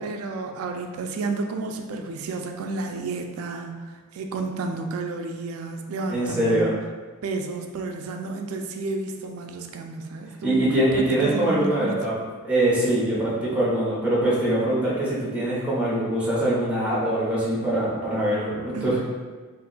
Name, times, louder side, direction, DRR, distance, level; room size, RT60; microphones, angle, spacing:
voice 1, 0.0-6.7 7.2-10.7 10.9-12.0 18.7-19.0, right 3 dB, 65° right, 4 dB, 0.3 m, -31 dB
voice 2, 6.1-6.7 10.4-12.1 12.4-19.0, right 1 dB, 5° right, -6 dB, 0.7 m, -23 dB
2.5 x 2.2 x 3.8 m, 1.4 s
head